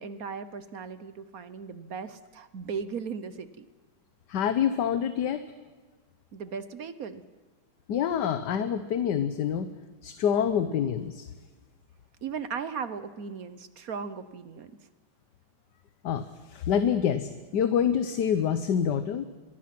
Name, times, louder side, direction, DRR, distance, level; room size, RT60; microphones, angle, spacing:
voice 1, 0.0-3.6 6.3-7.2 12.2-14.7, right 6 dB, 55° right, 13 dB, 1.2 m, -37 dB
voice 2, 4.3-5.4 7.9-9.7 10.0-11.3 16.0-19.2, left 8 dB, 65° left, 11 dB, 1.4 m, -26 dB
26.0 x 22.0 x 6.0 m, 1.4 s
omnidirectional pair, 2.2 m